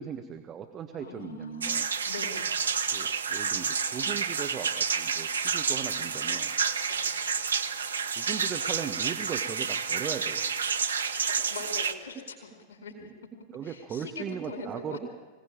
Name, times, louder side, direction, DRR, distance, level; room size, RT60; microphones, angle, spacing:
voice 1, 0.0-1.9 2.9-6.5 8.1-10.5 13.5-15.0, right 8 dB, 25° right, 6 dB, 1.4 m, -38 dB
voice 2, 1.0-1.7 2.0-2.4 6.9-7.1 11.3-13.1 13.6-15.0, left 2 dB, 65° left, 5 dB, 4.6 m, -41 dB
sound 1, 1.6-11.9, right 6 dB, 70° right, 1.1 m, -29 dB
24.5 x 17.5 x 8.7 m, 1.3 s
figure-of-eight pair, 90°, 0 cm